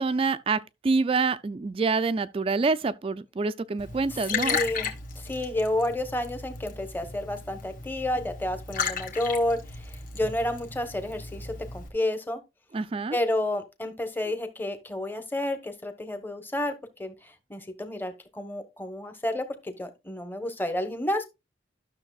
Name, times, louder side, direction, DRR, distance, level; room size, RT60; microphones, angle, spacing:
voice 1, 0.0-4.6 12.7-13.2, right 4 dB, 30° right, 0.3 m, -26 dB
Liquid, 3.8-11.9, left 5 dB, 45° left, 1.7 m, -35 dB
voice 2, 4.3-4.9 5.2-12.4 13.1-16.7 17.0-21.2, left 1 dB, 10° left, 1.0 m, -30 dB
12.5 x 6.5 x 2.3 m
head